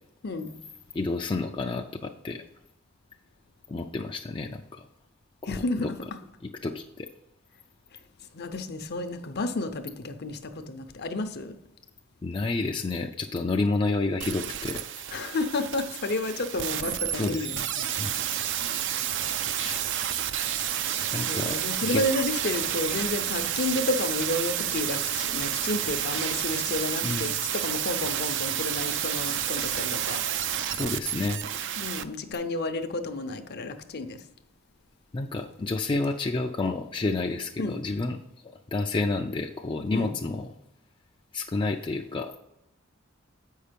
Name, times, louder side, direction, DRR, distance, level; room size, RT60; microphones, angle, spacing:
voice 1, 0.2-0.6 5.4-6.0 8.3-11.6 15.1-17.9 21.3-30.2 31.8-34.2 37.6-37.8 39.9-40.1, left 2 dB, 50° left, 0.7 m, -31 dB
voice 2, 0.9-2.4 3.7-4.8 5.4-5.9 6.6-7.1 12.2-14.9 17.1-17.7 18.0-18.2 19.6-19.8 21.1-22.0 27.0-27.3 30.7-31.4 35.1-38.2 38.4-40.5 41.3-42.4, left 3 dB, 25° left, 0.4 m, -30 dB
sound 1, 14.2-32.0 32.3-32.4, right 10 dB, 60° right, 0.5 m, -30 dB
8.0 x 5.5 x 5.1 m
head